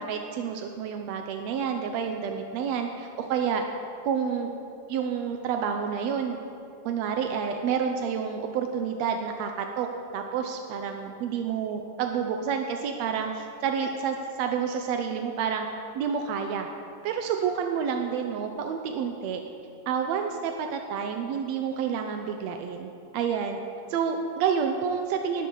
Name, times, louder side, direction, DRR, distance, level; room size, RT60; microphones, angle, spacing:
voice 1, 0.0-3.6 4.0-4.5 4.9-6.4 6.8-15.7 15.9-16.7 17.0-19.4 19.9-23.6 23.9-25.5, right 7 dB, 75° right, 4 dB, 1.5 m, -29 dB
18.5 x 12.5 x 3.9 m, 2.6 s
omnidirectional pair, 3.9 m